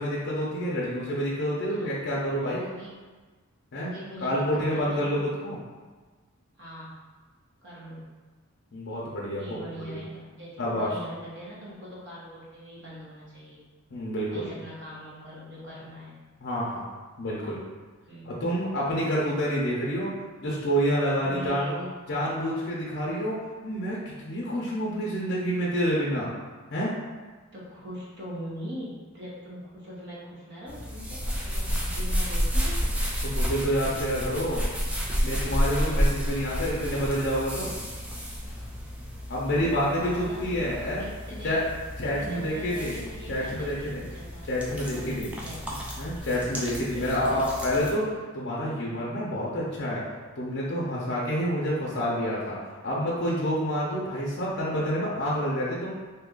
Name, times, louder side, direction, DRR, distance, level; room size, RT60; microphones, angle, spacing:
voice 1, 0.0-2.6 3.7-3.9 4.2-5.6 8.7-10.0 10.6-10.9 13.9-14.5 16.4-16.9 17.2-17.6 18.2-20.1 20.4-21.7 22.1-23.4 23.6-26.3 26.7-26.9 33.2-34.6 35.2-37.7 39.3-41.0 41.4-41.6 42.0-44.0 44.5-45.3 46.0-50.0 50.4-52.6 52.8-55.9, equal, 50° left, -5 dB, 0.5 m, -28 dB
voice 2, 2.4-2.9 3.7-5.3 6.6-7.0 7.6-8.2 9.4-13.6 14.3-16.2 18.1-18.4 18.9-19.2 21.2-21.9 27.5-32.9 39.4-39.7 40.0-40.7 41.0-41.6 42.0-44.5 44.9-45.8 46.9-47.4, equal, 55° right, -7 dB, 1.0 m, -42 dB
sound 1, 30.7-47.9, equal, 5° right, 0.3 m, -31 dB
2.7 x 2.4 x 3.7 m, 1.3 s
head